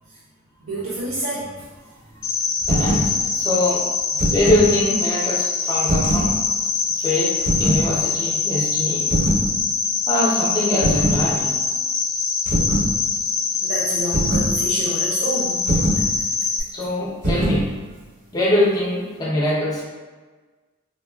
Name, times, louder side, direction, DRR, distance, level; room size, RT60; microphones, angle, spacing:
voice 1, 0.6-1.7 2.2-2.3 4.2-4.3 13.6-15.6, right 1 dB, 75° right, -5 dB, 0.4 m, -28 dB
Cricket, 2.2-16.6, left 5 dB, 75° left, 0.3 m, -23 dB
sound 1, 2.6-3.1 4.0-4.7 5.8-6.3 7.4-7.8 9.1-9.5 10.8-11.2 12.5-12.9 14.1-14.5 15.7-16.1 17.2-17.6, right 1 dB, 40° right, 0.7 m, -21 dB
voice 2, 2.7-3.9 4.3-6.4 7.0-7.3 7.6-9.1 10.1-11.5 16.7-17.7 18.3-19.8, left 1 dB, 20° left, -5 dB, 0.5 m, -22 dB
3.1 x 2.3 x 2.3 m, 1.3 s
head